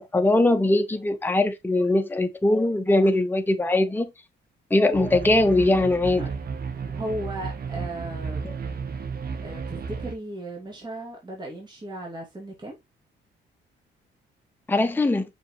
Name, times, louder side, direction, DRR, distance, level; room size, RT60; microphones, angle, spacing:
voice 1, 0.0-4.1 4.7-6.3 8.4-8.5 14.7-15.2, left 2 dB, 10° left, 1.0 m, -21 dB
sound 1, 4.9-10.1, right 5 dB, 50° right, 1.4 m, -33 dB
voice 2, 6.9-8.4 9.4-12.8, right 1 dB, 20° right, 2.6 m, -36 dB
6.1 x 5.3 x 3.2 m
cardioid pair, 90°, 20 cm